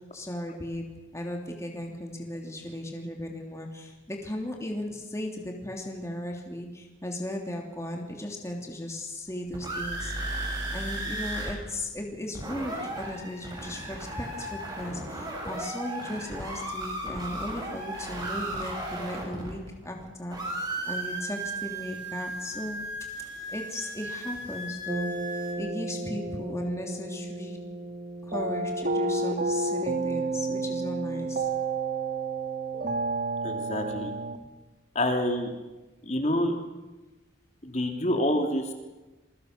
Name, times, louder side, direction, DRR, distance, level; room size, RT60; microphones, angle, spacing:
voice 1, 0.1-0.9 1.1-10.1 10.7-22.8 23.5-25.1 25.6-27.6 28.2-31.5, left 1 dB, 15° left, 1 dB, 3.0 m, -36 dB
sound 1, 9.3-11.5 11.8-11.9 12.1-20.0 20.3-25.5, right 1 dB, 20° right, 7.4 m, -35 dB
sound 2, 24.9-34.4, right 3 dB, 45° right, 1.7 m, -31 dB
voice 2, 33.4-34.1 34.9-35.5 36.0-36.6 37.6-38.7, left 1 dB, 35° left, 4 dB, 3.2 m, -27 dB
27.5 x 22.5 x 6.8 m, 1.1 s
head